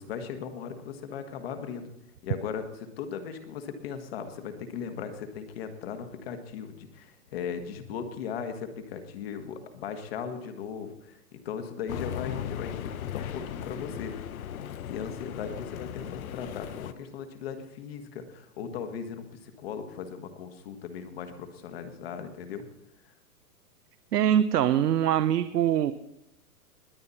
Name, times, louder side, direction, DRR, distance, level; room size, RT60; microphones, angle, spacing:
voice 1, 0.0-1.9 2.2-14.1 14.8-22.6 23.0-23.1, left 7 dB, 40° left, 7 dB, 1.6 m, -38 dB
sound 1, 11.9-16.9, left 10 dB, 60° left, 0.9 m, -37 dB
voice 2, 24.1-25.9, right 10 dB, 75° right, 11 dB, 0.8 m, -23 dB
21.0 x 8.9 x 4.2 m, 0.80 s
hypercardioid pair, 165°, 48 cm